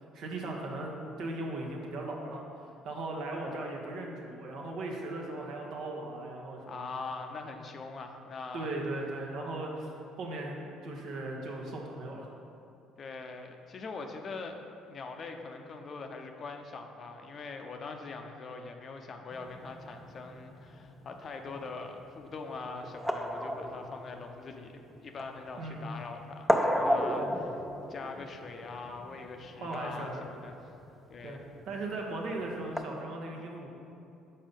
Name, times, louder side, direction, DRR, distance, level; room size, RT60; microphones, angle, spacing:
voice 1, 0.1-2.4 2.8-6.9 8.5-9.9 10.2-12.3 25.6-25.9 27.2-27.3 29.5-30.2 31.2-31.4 31.7-33.7, right 2 dB, 65° right, 0 dB, 1.0 m, -38 dB
voice 2, 6.7-8.7 13.0-14.6 14.9-27.5 27.9-30.8 31.1-31.5, left 4 dB, 45° left, 4 dB, 0.6 m, -42 dB
sound 1, 19.3-32.8, equal, ahead, 0.5 m, -35 dB
5.6 x 4.2 x 5.2 m, 2.6 s
hypercardioid pair, 65°, 0 cm